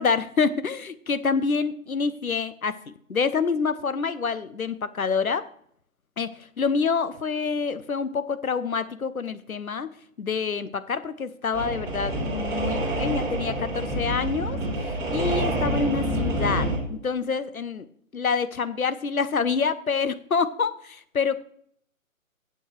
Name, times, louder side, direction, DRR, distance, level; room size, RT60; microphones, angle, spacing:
voice 1, 0.0-5.5 6.2-9.9 10.2-17.9 18.1-21.4, left 5 dB, 85° left, 14 dB, 0.8 m, -27 dB
sound 1, 11.5-16.8, right 1 dB, 10° right, 1.5 m, -27 dB
15.5 x 7.1 x 3.1 m, 0.65 s
figure-of-eight pair, 140°, 41 cm